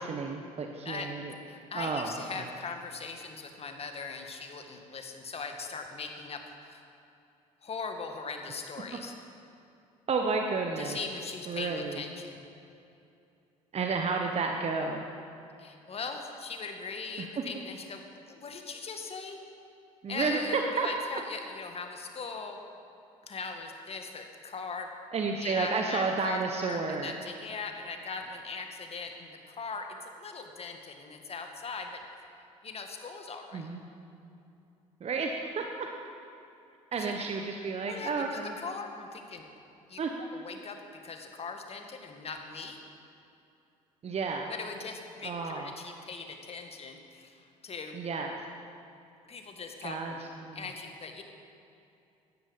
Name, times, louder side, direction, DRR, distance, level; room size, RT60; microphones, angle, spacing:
voice 1, 0.0-1.3 1.7-2.4 10.1-11.0 11.5-12.0 13.7-15.0 17.2-17.3 20.0-20.9 25.1-27.2 33.5-33.8 35.0-35.9 36.9-38.5 40.0-40.1 44.0-44.5 45.2-45.7 47.9-48.4 49.8-50.6, right 4 dB, 35° right, 3 dB, 1.2 m, -31 dB
voice 2, 1.5-6.8 7.6-9.1 10.8-12.4 15.6-18.0 18.3-19.4 20.1-22.6 23.2-24.9 25.4-32.0 32.6-33.7 36.9-37.1 37.9-39.4 39.9-40.0 40.3-42.8 44.5-48.0 49.3-50.2 50.5-51.2, left 4 dB, 35° left, 4 dB, 2.1 m, -40 dB
16.5 x 13.0 x 5.3 m, 2.7 s
figure-of-eight pair, 55°, 17 cm